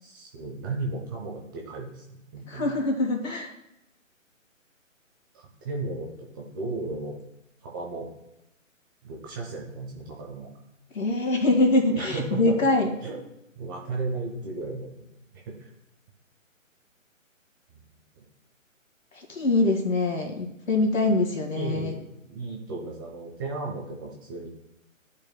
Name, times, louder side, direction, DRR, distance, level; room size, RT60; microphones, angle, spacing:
voice 1, 0.0-2.7 5.3-7.2 7.6-8.1 9.0-10.5 11.9-12.6 13.0-13.2 13.6-15.1 15.3-15.7 18.1-18.2 21.2-24.5, right 3 dB, 15° right, -1 dB, 0.8 m, -35 dB
voice 2, 2.5-3.5 10.9-12.9 19.2-22.0, left 2 dB, 75° left, 3 dB, 2.0 m, -24 dB
13.5 x 5.1 x 2.2 m, 0.85 s
figure-of-eight pair, 145°, 40 cm